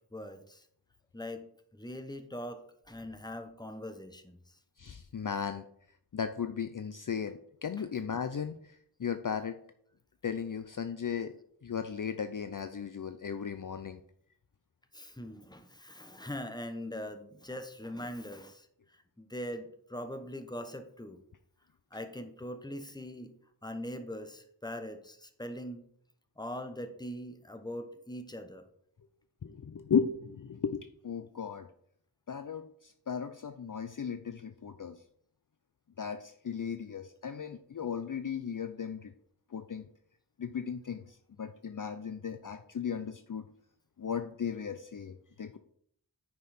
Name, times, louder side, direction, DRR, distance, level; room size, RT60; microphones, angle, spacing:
voice 1, 0.1-0.6 1.1-1.4 1.7-4.4 7.8-7.9 14.9-18.7 19.2-21.2 21.9-23.3 23.6-25.8 26.4-28.6, left 1 dB, 10° left, 7 dB, 1.1 m, -41 dB
voice 2, 4.8-5.6 6.1-9.6 10.2-11.3 11.6-14.0 29.4-31.7 32.3-35.0 36.0-39.1 39.5-39.9 40.4-43.5 44.0-45.6, left 7 dB, 50° left, 9 dB, 0.5 m, -36 dB
9.6 x 5.5 x 4.3 m, 0.66 s
wide cardioid pair, 55°, 41 cm